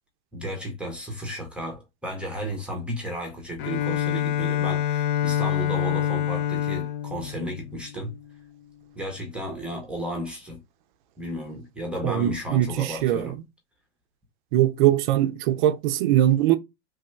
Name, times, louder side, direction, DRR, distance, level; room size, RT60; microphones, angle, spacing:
voice 1, 0.3-8.1 9.0-10.6 11.2-13.4, equal, 5° right, 0.6 m, -33 dB
Bowed string instrument, 3.6-8.4, left 10 dB, 50° left, 0.4 m, -26 dB
voice 2, 12.0-13.3 14.5-16.6, right 13 dB, 45° right, 0.4 m, -21 dB
3.2 x 2.2 x 3.1 m
supercardioid pair, 145°, 34 cm